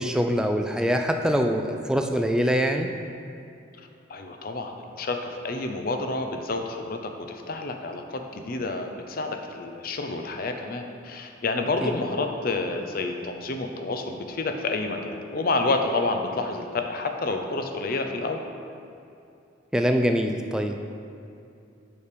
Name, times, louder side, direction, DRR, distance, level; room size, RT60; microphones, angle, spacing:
voice 1, 0.0-2.9 11.8-11.9 19.7-20.9, equal, 5° right, 4 dB, 0.3 m, -24 dB
voice 2, 4.1-18.4, left 3 dB, 50° left, 5 dB, 0.6 m, -29 dB
7.0 x 5.2 x 5.0 m, 2.6 s
head